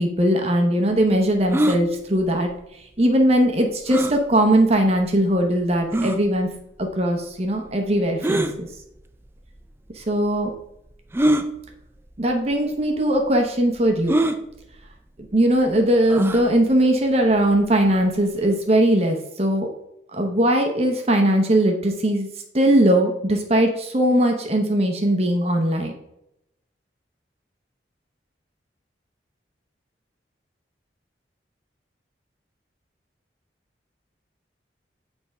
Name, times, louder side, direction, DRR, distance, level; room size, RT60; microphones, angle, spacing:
voice 1, 0.0-2.5 3.0-6.5 6.8-8.7 10.0-10.5 12.2-14.2 15.3-19.7 20.1-22.3 22.5-26.0, right 1 dB, 35° right, 3 dB, 0.8 m, -20 dB
sound 1, 1.5-1.8 3.9-4.2 5.0-5.1 5.9-6.2 8.2-8.5 9.6-9.7 11.1-11.5 12.4-12.5 12.8-12.9 14.1-14.4 16.1-16.4, right 1 dB, 15° right, 0.4 m, -22 dB
8.3 x 3.5 x 5.4 m, 0.81 s
head